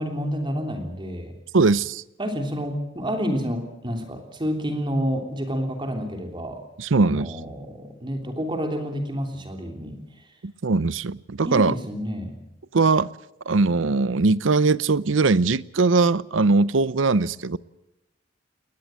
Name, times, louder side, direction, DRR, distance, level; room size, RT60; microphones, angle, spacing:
voice 1, 0.0-1.3 2.2-6.6 7.0-10.0 11.4-12.4, equal, 25° right, 3.1 m, -29 dB
voice 2, 1.5-2.0 6.8-7.4 10.4-11.7 12.7-13.1 13.5-17.6, right 3 dB, 85° right, 0.7 m, -20 dB
21.5 x 19.5 x 7.6 m
head